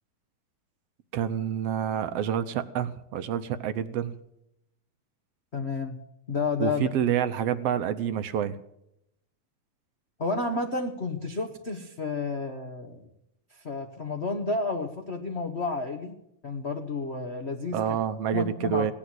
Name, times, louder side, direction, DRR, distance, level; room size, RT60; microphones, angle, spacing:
voice 1, 1.1-4.1 6.6-8.6 17.7-18.9, right 9 dB, 70° right, 11 dB, 1.5 m, -28 dB
voice 2, 5.5-6.0 6.3-6.9 10.2-13.1 13.5-16.2 16.4-17.8 18.3-18.9, left 3 dB, 60° left, 3 dB, 0.6 m, -31 dB
17.0 x 10.5 x 7.7 m, 0.80 s
omnidirectional pair, 3.5 m